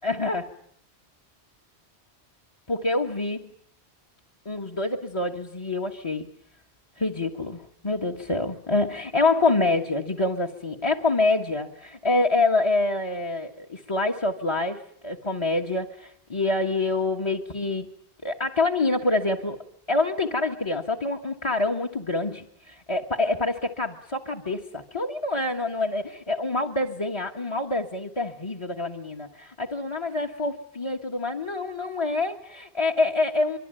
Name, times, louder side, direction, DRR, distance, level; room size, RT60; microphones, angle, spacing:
voice 1, 0.0-0.6 2.7-3.5 4.4-6.3 7.0-17.9 18.2-19.6 19.9-33.6, left 2 dB, 25° left, 7 dB, 1.5 m, -26 dB
25.0 x 24.5 x 9.1 m, 0.65 s
omnidirectional pair, 1.1 m